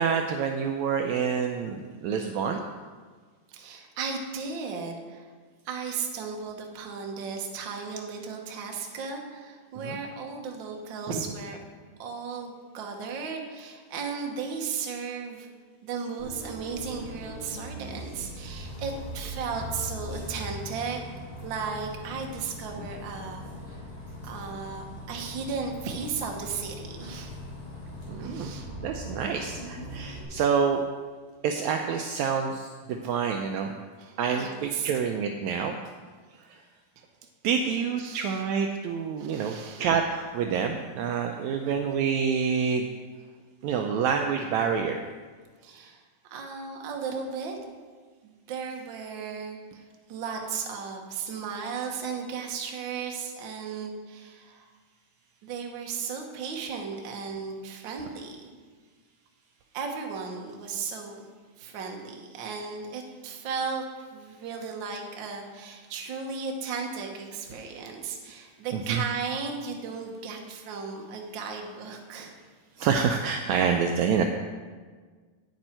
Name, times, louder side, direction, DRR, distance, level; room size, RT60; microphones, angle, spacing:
voice 1, 0.0-2.6 9.8-10.0 28.1-28.5 28.8-30.8 31.4-33.7 34.2-35.7 36.4-36.6 37.4-42.9 43.6-45.0 68.7-69.0 72.8-74.2, right 6 dB, 80° right, 4 dB, 1.7 m, -27 dB
voice 2, 3.5-5.2 5.6-11.6 12.0-15.5 15.8-21.0 21.4-23.8 24.2-27.3 28.2-28.7 34.0-34.9 37.0-37.1 38.0-38.4 39.2-39.9 45.6-46.0 46.3-47.6 48.2-49.8 50.1-54.6 55.4-58.5 59.7-61.2 61.6-72.3, right 5 dB, 60° right, 2 dB, 1.2 m, -35 dB
Bus, 16.2-30.2, left 1 dB, 40° left, 2.9 m, -40 dB
9.0 x 8.8 x 4.4 m, 1.5 s
omnidirectional pair, 3.7 m